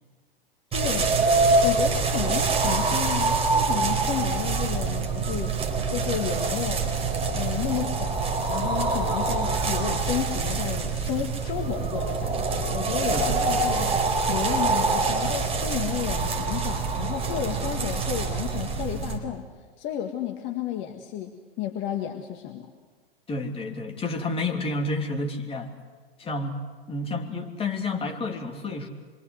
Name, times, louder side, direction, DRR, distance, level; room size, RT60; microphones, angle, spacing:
voice 1, 0.7-1.3 1.6-5.5 5.9-7.0 7.3-13.9 14.3-19.4 19.8-21.3 21.6-22.7, left 10 dB, 40° left, 4 dB, 1.9 m, -32 dB
sound 1, 0.7-19.2, right 4 dB, 20° right, 4.1 m, -25 dB
voice 2, 13.1-13.6 23.3-25.7 26.2-28.9, left 2 dB, 20° left, 2 dB, 3.1 m, -30 dB
26.5 x 23.5 x 8.0 m, 1.4 s
hypercardioid pair, 100°, 30 cm